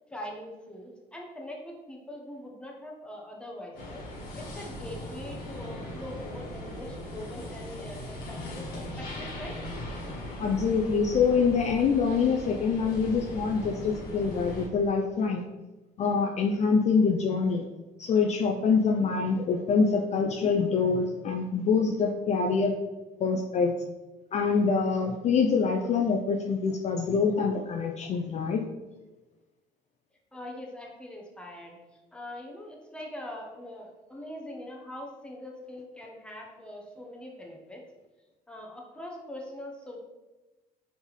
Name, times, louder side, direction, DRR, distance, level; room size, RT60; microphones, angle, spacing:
voice 1, 0.1-4.0 4.4-9.6 30.3-31.8 32.1-37.8 38.5-40.0, left 1 dB, 5° left, -1 dB, 0.9 m, -42 dB
sound 1, 3.8-14.7, left 1 dB, 60° left, 1.3 m, -39 dB
voice 2, 10.4-15.4 16.0-17.6 18.0-22.7 23.2-23.7 24.3-28.6, left 5 dB, 40° left, 2 dB, 0.4 m, -25 dB
4.3 x 3.4 x 3.1 m, 1.1 s
cardioid pair, 110°, 17 cm